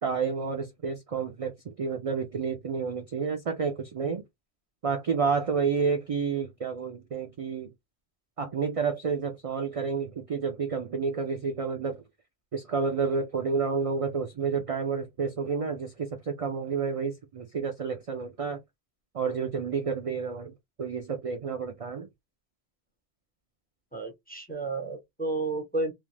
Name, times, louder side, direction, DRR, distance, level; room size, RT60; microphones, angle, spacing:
voice 1, 0.0-4.2 4.8-7.7 8.4-12.0 12.5-18.6 19.1-20.5 20.8-22.1, right 5 dB, 55° right, 0.4 m, -30 dB
voice 2, 23.9-25.9, right 2 dB, 10° left, 0.7 m, -32 dB
2.5 x 2.3 x 3.2 m
omnidirectional pair, 1.2 m